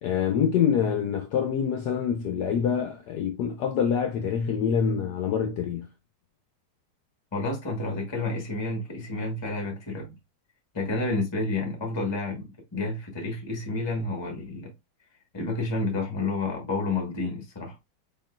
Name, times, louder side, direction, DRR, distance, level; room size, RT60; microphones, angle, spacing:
voice 1, 0.0-5.9, left 7 dB, 75° left, 0.9 m, -26 dB
voice 2, 7.3-10.2 10.7-14.7 15.3-17.7, left 2 dB, 25° left, 0.6 m, -30 dB
4.3 x 3.7 x 2.2 m
omnidirectional pair, 2.3 m